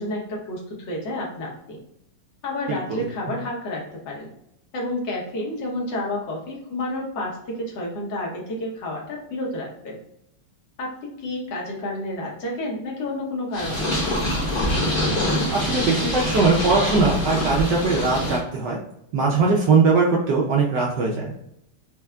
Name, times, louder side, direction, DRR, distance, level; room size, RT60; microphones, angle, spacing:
voice 1, 0.0-1.8 2.4-4.3 4.7-10.0 10.8-14.1, left 1 dB, 60° left, -2 dB, 1.6 m, -30 dB
voice 2, 2.7-3.0 15.5-18.8 19.1-21.3, right 4 dB, 75° right, -2 dB, 1.0 m, -20 dB
Purr, 13.5-18.4, left 1 dB, 40° left, 0.8 m, -24 dB
4.4 x 2.6 x 2.3 m, 0.78 s
omnidirectional pair, 2.4 m